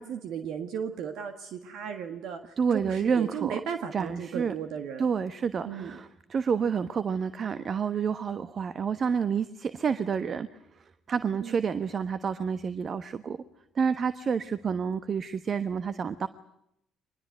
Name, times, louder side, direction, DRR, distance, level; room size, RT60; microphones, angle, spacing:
voice 1, 0.0-5.1 5.6-6.0 11.4-11.6, right 8 dB, 65° right, 7 dB, 1.6 m, -35 dB
voice 2, 2.6-3.6 3.9-4.5 5.0-10.5 11.1-13.4 13.7-16.3, right 6 dB, 45° right, 13 dB, 1.2 m, -29 dB
24.5 x 21.5 x 9.3 m, 0.78 s
hypercardioid pair, 50°, 0 cm